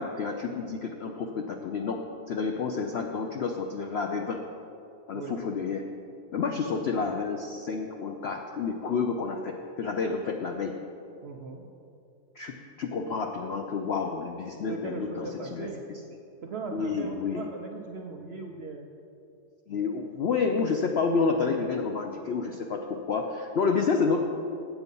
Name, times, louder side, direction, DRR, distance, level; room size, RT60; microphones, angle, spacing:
voice 1, 0.0-4.4 5.1-5.9 6.3-10.8 12.4-15.7 16.7-17.4 19.7-24.2, left 5 dB, 75° left, 3 dB, 0.6 m, -29 dB
voice 2, 11.2-11.6 14.7-15.8 16.4-18.9, right 4 dB, 60° right, 2 dB, 0.6 m, -38 dB
8.2 x 8.0 x 5.3 m, 2.6 s
omnidirectional pair, 1.7 m